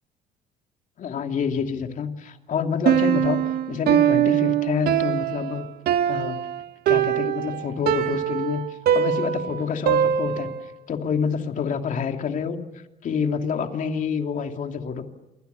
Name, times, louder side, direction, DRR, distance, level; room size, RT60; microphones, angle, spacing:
voice 1, 1.0-3.4 3.7-5.7 6.1-6.5 6.9-8.6 8.9-10.5 10.9-12.6 13.0-15.0, left 6 dB, 50° left, 5 dB, 2.8 m, -27 dB
Piano, 2.9-10.7, right 10 dB, 65° right, 1.3 m, -22 dB
28.0 x 23.5 x 7.0 m, 0.98 s
cardioid pair, 110°, 17 cm